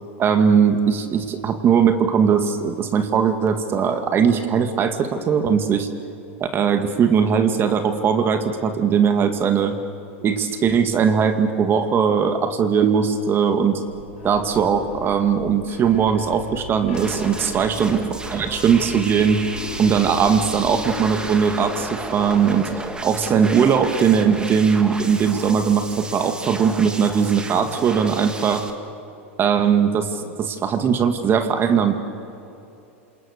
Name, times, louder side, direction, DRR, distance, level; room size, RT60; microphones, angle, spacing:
voice 1, 0.2-5.9 6.4-9.8 10.2-13.8 14.2-18.0 18.3-19.4 19.8-22.7 23.0-28.7 29.4-32.0, right 7 dB, 30° right, 7 dB, 2.1 m, -19 dB
sound 1, 13.8-26.5, left 3 dB, 85° left, 6.4 m, -38 dB
sound 2, 16.9-28.7, right 2 dB, 10° right, 2.2 m, -34 dB
28.0 x 27.0 x 6.7 m, 2.7 s
hypercardioid pair, 105°, 7 cm